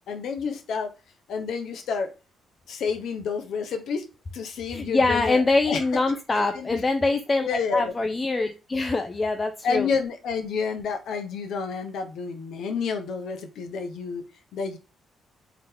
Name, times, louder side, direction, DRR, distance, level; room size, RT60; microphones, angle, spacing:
voice 1, 0.1-0.9 1.3-2.1 2.7-4.0 4.3-5.4 5.7-6.0 6.3-6.8 7.4-7.9 9.6-14.2 14.5-14.8, left 5 dB, 75° left, 7 dB, 0.8 m, -29 dB
voice 2, 4.7-9.9, left 3 dB, 25° left, 7 dB, 0.4 m, -24 dB
3.9 x 2.8 x 3.4 m, 0.32 s
cardioid pair, 90°, 0 cm